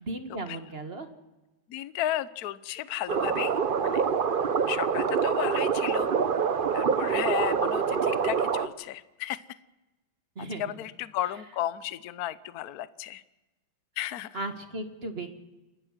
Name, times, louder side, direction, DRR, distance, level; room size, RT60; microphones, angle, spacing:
voice 1, 0.1-1.1 6.8-7.2 10.4-10.6 14.3-15.3, right 2 dB, 30° right, 7 dB, 1.8 m, -36 dB
voice 2, 1.7-4.0 4.7-6.1 6.7-9.4 10.6-13.2 14.0-14.4, left 13 dB, 60° left, 16 dB, 1.1 m, -34 dB
sound 1, 3.1-8.7, right 6 dB, 80° right, 0.4 m, -26 dB
29.5 x 12.5 x 7.4 m, 1.1 s
omnidirectional pair, 2.2 m